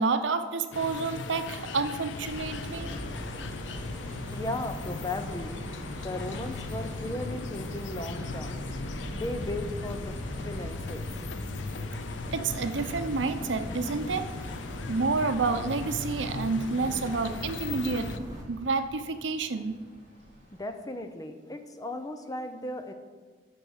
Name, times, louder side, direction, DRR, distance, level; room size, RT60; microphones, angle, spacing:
voice 1, 0.0-2.9 12.3-14.3 14.9-19.8, right 4 dB, 90° right, 10 dB, 0.7 m, -29 dB
sound 1, 0.7-18.2, left 4 dB, 80° left, 0.5 m, -39 dB
sound 2, 2.2-18.4, equal, 20° right, 1.6 m, -40 dB
sound 3, 2.7-20.6, left 1 dB, 55° left, 3.0 m, -51 dB
voice 2, 4.3-5.6 6.0-8.6 9.1-11.1 12.2-12.5 20.6-22.9, left 1 dB, 20° left, 7 dB, 0.7 m, -36 dB
12.0 x 4.6 x 6.5 m, 1.5 s
head